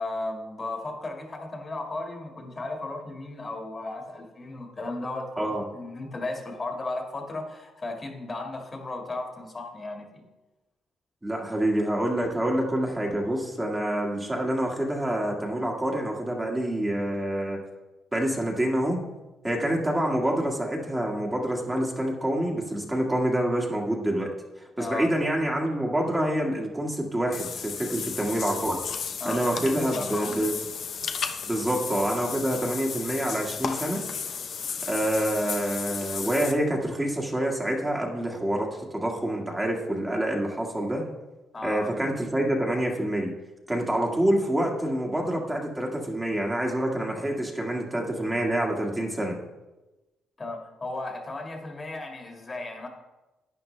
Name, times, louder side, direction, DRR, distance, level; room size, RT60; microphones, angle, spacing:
voice 1, 0.0-10.2 24.8-25.1 29.2-30.5 41.5-41.9 50.4-52.9, left 2 dB, 30° left, 2 dB, 1.9 m, -35 dB
voice 2, 11.2-17.6 18.1-19.0 19.4-24.3 24.6-28.8 29.2-30.5 31.5-34.0 34.9-41.0 41.6-43.3 43.7-49.3, right 1 dB, 15° right, -1 dB, 1.7 m, -27 dB
Water / Bathtub (filling or washing), 27.3-36.5, left 6 dB, 60° left, 0.8 m, -34 dB
11.5 x 9.1 x 3.3 m, 1.1 s
cardioid pair, 90°, 0 cm